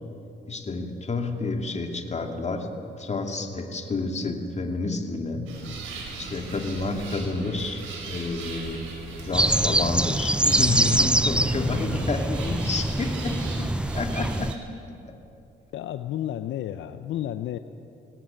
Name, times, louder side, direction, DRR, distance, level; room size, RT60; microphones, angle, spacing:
voice 1, 0.5-2.7 3.0-5.5 6.2-8.8 9.2-14.6, left 3 dB, 35° left, 3 dB, 2.6 m, -29 dB
sound 1, 5.5-14.6, right 4 dB, 85° right, 4.4 m, -39 dB
sound 2, 9.3-14.5, right 1 dB, 5° right, 0.4 m, -24 dB
voice 2, 15.7-17.6, left 12 dB, 70° left, 10 dB, 0.7 m, -31 dB
18.5 x 18.0 x 9.0 m, 2.8 s
cardioid pair, 90°, 20 cm